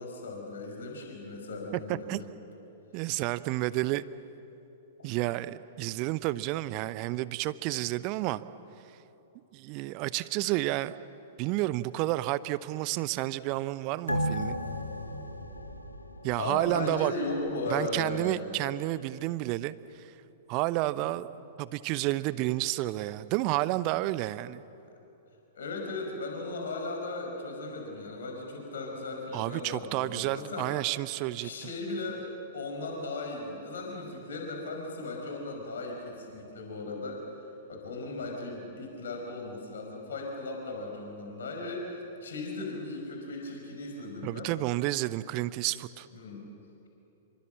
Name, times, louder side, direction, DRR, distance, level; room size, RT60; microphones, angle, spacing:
voice 1, 0.0-2.3 5.0-5.1 16.4-18.4 25.5-30.7 31.4-37.2 37.7-44.5 46.1-46.5, left 2 dB, 60° left, 2 dB, 5.3 m, -37 dB
voice 2, 1.9-2.2 2.9-4.0 5.0-8.4 9.5-11.0 11.4-14.6 16.2-17.1 17.7-20.1 20.5-21.3 21.6-24.6 29.3-31.5 44.2-46.1, right 17 dB, 35° right, 16 dB, 0.8 m, -30 dB
sound 1, 14.1-17.0 17.3-17.4, equal, 85° left, 1.9 m, -34 dB
27.5 x 24.0 x 7.5 m, 2.9 s
figure-of-eight pair, 105°, 0 cm